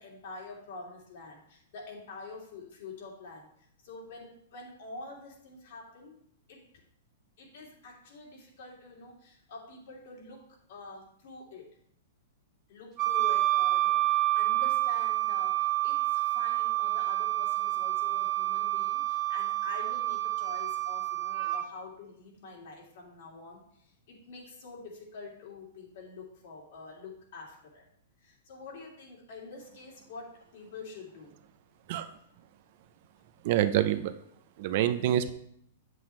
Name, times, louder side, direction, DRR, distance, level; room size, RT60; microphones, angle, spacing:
voice 1, 0.0-6.2 6.5-6.6 7.4-11.7 12.7-27.9 28.2-31.3, left 3 dB, 60° left, -2 dB, 2.7 m, -46 dB
Wind instrument woodwind instrument, 13.0-21.6, right 16 dB, 25° right, 1.1 m, -28 dB
voice 2, 33.4-34.1 34.6-35.3, right 11 dB, 45° right, 10 dB, 0.5 m, -26 dB
8.5 x 7.7 x 3.2 m, 0.68 s
hypercardioid pair, 155°, 0 cm